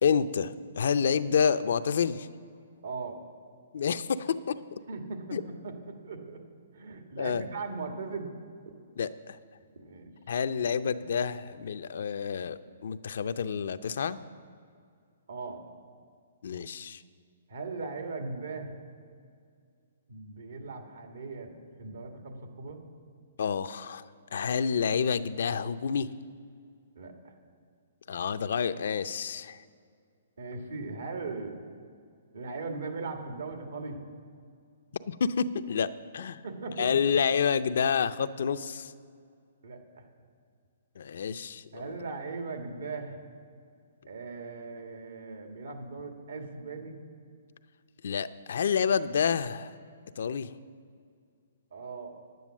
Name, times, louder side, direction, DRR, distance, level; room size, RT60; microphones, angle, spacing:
voice 1, 0.0-2.3 3.7-4.6 5.3-5.4 7.2-7.4 9.0-9.4 10.3-14.2 16.4-17.0 23.4-24.0 24.3-26.1 28.1-29.6 35.1-36.4 36.8-38.9 41.0-41.8 48.0-49.7 50.2-50.5, left 6 dB, 65° left, 12 dB, 0.5 m, -28 dB
voice 2, 2.8-3.2 4.9-6.4 6.7-8.3 9.7-10.1 15.3-15.6 17.5-18.7 20.1-21.5 21.8-22.8 27.0-27.4 30.4-31.5 32.3-34.0 36.4-36.9 39.6-40.0 41.7-43.2 44.0-47.0 51.7-52.1, right 4 dB, 80° right, 4 dB, 2.0 m, -39 dB
9.7 x 9.3 x 7.3 m, 2.2 s
hypercardioid pair, 160°, 0 cm